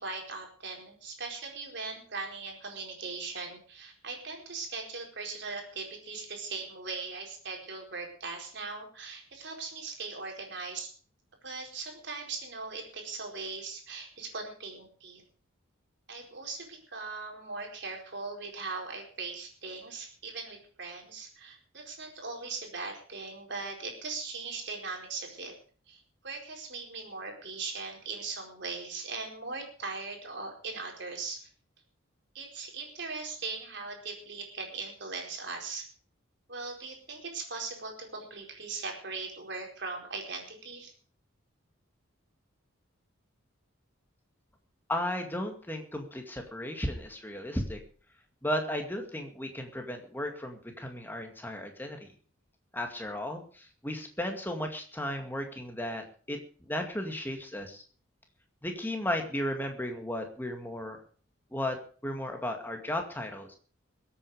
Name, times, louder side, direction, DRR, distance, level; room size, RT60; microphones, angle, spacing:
voice 1, 0.0-10.9 11.4-15.2 16.1-25.5 25.9-31.5 32.3-35.8 36.5-40.9, right 4 dB, 55° right, 2 dB, 4.6 m, -39 dB
voice 2, 44.9-47.8 48.4-52.1 52.7-56.4 56.7-57.8 58.6-61.0 61.5-61.8 62.0-63.6, left 1 dB, 10° left, 4 dB, 2.2 m, -35 dB
22.0 x 8.6 x 5.0 m, 0.41 s
head